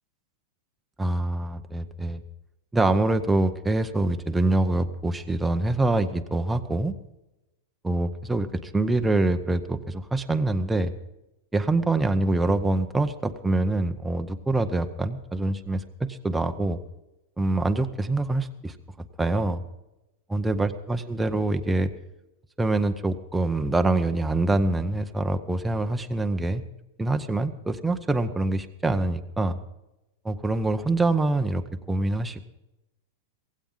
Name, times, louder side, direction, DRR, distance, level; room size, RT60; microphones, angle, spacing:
voice 1, 1.0-2.2 2.7-6.9 7.8-10.9 11.5-16.8 17.4-18.7 19.2-19.6 20.3-21.9 22.6-26.6 27.0-29.6 30.2-32.4, right 2 dB, 5° right, 6 dB, 0.7 m, -25 dB
16.5 x 16.0 x 3.8 m, 0.95 s
supercardioid pair, 150°, 0 cm